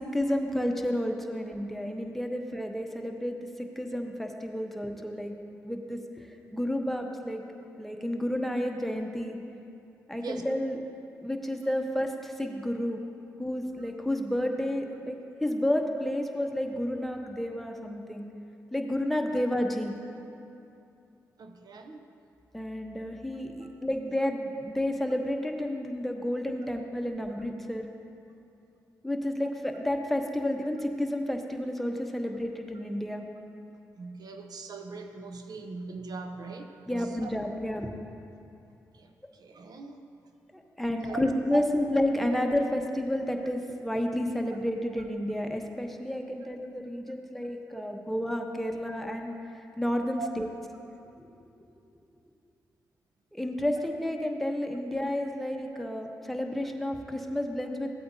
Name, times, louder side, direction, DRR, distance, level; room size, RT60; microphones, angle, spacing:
voice 1, 0.1-5.3 5.6-7.4 7.8-9.4 10.1-10.8 11.2-13.0 13.4-18.3 18.7-19.9 22.5-27.8 29.0-33.2 36.9-38.0 40.5-50.5 53.3-57.9, left 1 dB, 5° left, 3 dB, 1.0 m, -31 dB
voice 2, 21.4-22.0 23.6-23.7 27.3-27.4 34.0-37.3 38.9-40.0 41.0-41.2 41.5-41.6 46.1-46.2 47.7-47.9 50.2-50.3 55.7-55.9, right 4 dB, 65° right, 5 dB, 0.7 m, -41 dB
14.5 x 8.4 x 2.8 m, 2.7 s
supercardioid pair, 45°, 7 cm